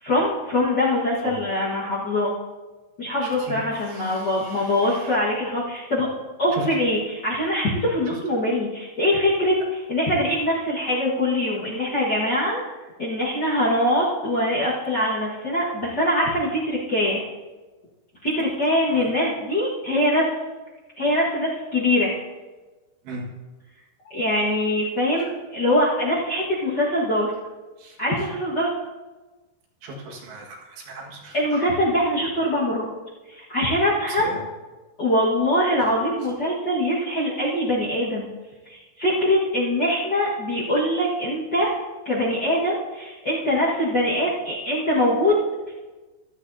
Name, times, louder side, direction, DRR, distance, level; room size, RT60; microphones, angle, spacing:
voice 1, 0.0-2.3 3.0-6.1 6.4-12.6 13.0-17.2 18.2-20.3 21.0-22.1 24.1-27.3 28.0-28.7 31.3-32.9 33.3-34.3 35.0-38.3 38.6-41.7 42.0-45.3 45.7-45.8, left 1 dB, 75° left, -8 dB, 0.9 m, -23 dB
voice 2, 3.2-5.2 6.5-6.7 18.9-19.1 23.1-23.3 27.8-28.0 29.8-31.6 34.1-34.4, right 2 dB, 85° right, -2 dB, 4.0 m, -38 dB
15.0 x 12.0 x 2.8 m, 1.2 s
omnidirectional pair, 4.8 m